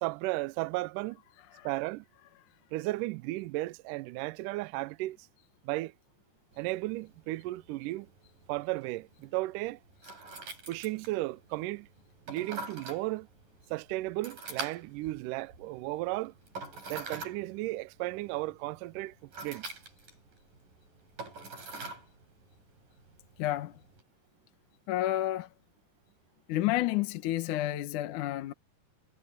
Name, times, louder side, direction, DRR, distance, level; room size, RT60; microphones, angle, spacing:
voice 1, 0.0-1.2 1.6-2.1 2.7-5.3 5.6-5.9 6.6-8.1 8.5-9.8 10.7-11.9 12.3-13.3 13.7-16.3 16.9-19.7, right 19 dB, 85° right, 1.8 m, -34 dB
sound 1, 6.5-24.0, right 3 dB, 55° right, 8.7 m, -46 dB
voice 2, 23.4-23.8 24.9-25.5 26.5-28.5, left 14 dB, 65° left, 2.2 m, -30 dB
omnidirectional pair, 4.5 m